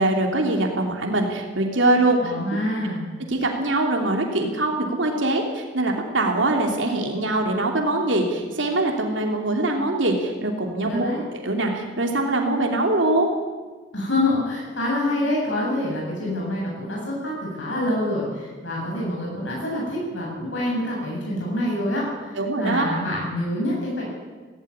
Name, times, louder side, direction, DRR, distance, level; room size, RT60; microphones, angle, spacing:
voice 1, 0.0-2.3 3.3-13.3 22.3-23.0, right 2 dB, 85° right, 2 dB, 3.1 m, -23 dB
voice 2, 2.2-3.0 10.9-11.2 13.9-24.0, left 1 dB, 80° left, -3 dB, 7.9 m, -26 dB
17.0 x 16.5 x 9.9 m, 1.3 s
head